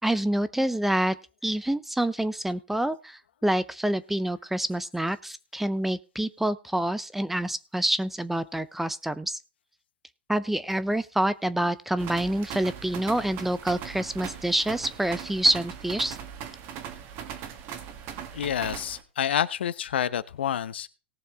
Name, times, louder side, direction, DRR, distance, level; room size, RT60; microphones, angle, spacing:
voice 1, 0.0-1.2 1.4-9.4 10.3-16.2, right 1 dB, 5° right, 15 dB, 0.5 m, -27 dB
sound 1, 12.0-19.0, right 8 dB, 40° right, 1.9 m, -39 dB
voice 2, 18.3-20.9, left 9 dB, 70° left, 16 dB, 0.9 m, -28 dB
18.5 x 6.8 x 3.4 m, 0.33 s
hypercardioid pair, 120°, 6 cm